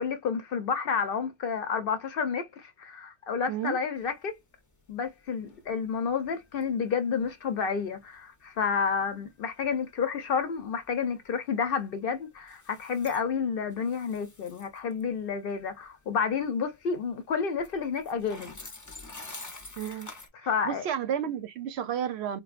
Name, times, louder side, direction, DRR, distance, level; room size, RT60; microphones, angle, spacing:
voice 1, 0.0-4.4 4.9-18.6 19.9-20.0 20.3-20.8, left 6 dB, 60° left, 0.7 m, -30 dB
sound 1, 4.0-20.3, left 2 dB, 25° left, 0.5 m, -50 dB
voice 2, 19.8-20.1 20.6-22.4, right 9 dB, 70° right, 0.8 m, -31 dB
3.9 x 2.2 x 2.4 m
omnidirectional pair, 1.2 m